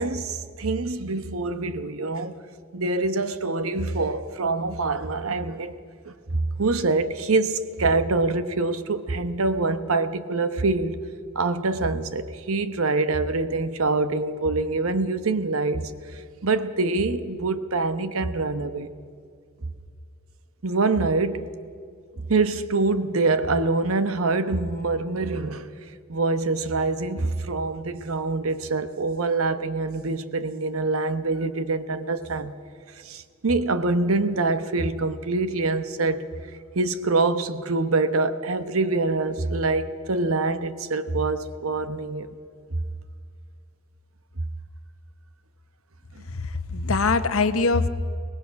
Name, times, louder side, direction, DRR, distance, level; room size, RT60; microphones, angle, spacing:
voice 1, 0.0-2.4 2.7-5.7 6.0-11.0 11.3-18.9 20.6-21.5 22.3-25.7 26.1-32.5 33.0-36.3 36.7-42.3, right 3 dB, 80° right, 1.0 m, -25 dB
voice 2, 46.3-47.9, left 3 dB, 75° left, 1.0 m, -23 dB
23.5 x 19.0 x 5.9 m
head